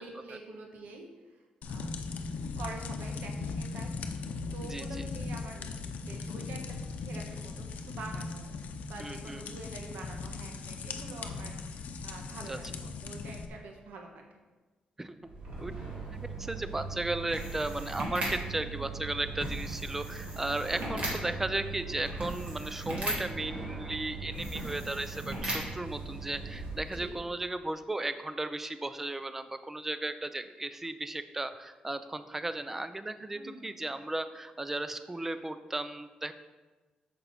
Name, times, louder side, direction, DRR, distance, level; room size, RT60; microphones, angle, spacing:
voice 1, 0.0-2.0 2.6-3.9 4.5-6.6 7.0-8.6 8.9-14.2 18.5-18.8 26.8-27.2 33.3-33.8, right 3 dB, 85° right, 2 dB, 1.2 m, -46 dB
sound 1, 1.6-13.5, left 4 dB, 70° left, 0.7 m, -38 dB
voice 2, 4.7-5.1 9.0-9.6 12.5-12.6 15.0-15.2 15.6-15.7 16.1-36.3, right 2 dB, 10° right, 11 dB, 0.4 m, -35 dB
sound 2, 15.2-27.2, right 2 dB, 45° right, 2.3 m, -38 dB
8.9 x 6.8 x 4.2 m, 1.2 s
wide cardioid pair, 180°, 3 cm